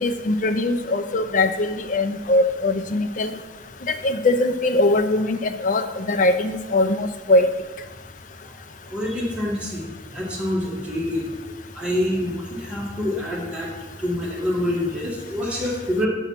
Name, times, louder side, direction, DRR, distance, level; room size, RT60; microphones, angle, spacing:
voice 1, 0.0-3.3 3.9-7.5, left 2 dB, 45° left, 9 dB, 0.4 m, -21 dB
voice 2, 8.9-11.3 11.7-13.7 14.0-16.1, left 1 dB, 5° right, -5 dB, 1.6 m, -26 dB
7.4 x 3.9 x 5.9 m, 1.2 s
head